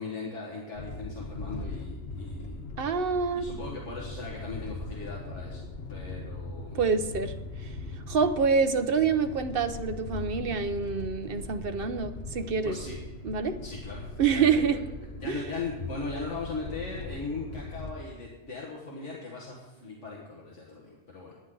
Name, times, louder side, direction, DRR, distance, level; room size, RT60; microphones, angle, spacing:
voice 1, 0.0-2.6 3.3-6.8 12.6-13.0 13.6-14.8 15.1-21.3, left 3 dB, 75° left, 2.1 m, -39 dB
sound 1, 0.7-17.9, left 3 dB, 60° left, 1.3 m, -40 dB
voice 2, 2.8-3.5 6.7-7.8 8.1-12.8 13.2-13.6 14.2-14.8 15.2-15.4, right 5 dB, 55° right, 1.1 m, -27 dB
20.5 x 9.6 x 3.9 m
omnidirectional pair, 1.2 m